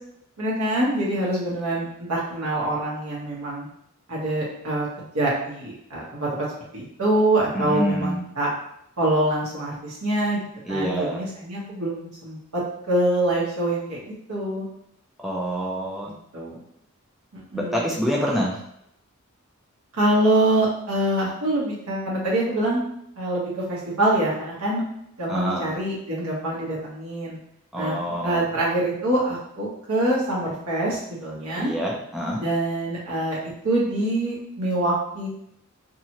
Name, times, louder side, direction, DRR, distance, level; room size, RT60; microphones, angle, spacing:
voice 1, 0.4-3.7 4.1-6.5 6.7-8.5 9.0-10.4 10.7-12.6 12.9-14.7 16.0-16.6 17.3-17.9 19.9-22.8 23.2-24.8 25.2-27.4 27.7-31.7 32.4-33.4 33.6-35.3, right 1 dB, 75° right, -6 dB, 1.1 m, -25 dB
voice 2, 7.5-8.2 10.6-11.2 15.2-16.1 17.5-18.6 25.3-25.7 27.7-28.4 31.6-32.4, equal, ahead, -4 dB, 0.3 m, -26 dB
2.8 x 2.4 x 2.9 m, 0.75 s
head